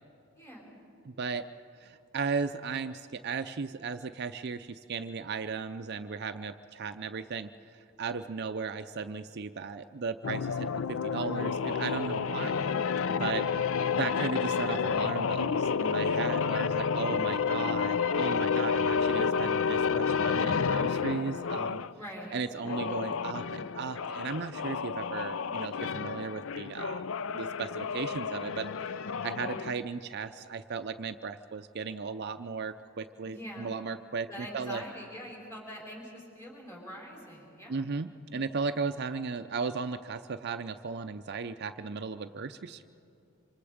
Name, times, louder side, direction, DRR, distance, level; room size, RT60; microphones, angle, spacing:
voice 1, 0.4-0.7 12.4-12.6 21.9-23.0 29.3-29.6 33.2-33.8 34.3-37.9 38.3-38.4, equal, 10° left, -2 dB, 5.2 m, -45 dB
voice 2, 1.1-1.5 1.8-7.5 8.0-12.6 13.2-13.5 14.0-21.8 22.3-27.0 27.3-34.3 34.5-34.8 37.7-42.8, right 5 dB, 50° right, 9 dB, 0.5 m, -36 dB
sound 1, 10.2-21.9 22.6-29.7, left 6 dB, 65° left, 0.4 m, -30 dB
26.5 x 26.0 x 5.0 m, 2.6 s
head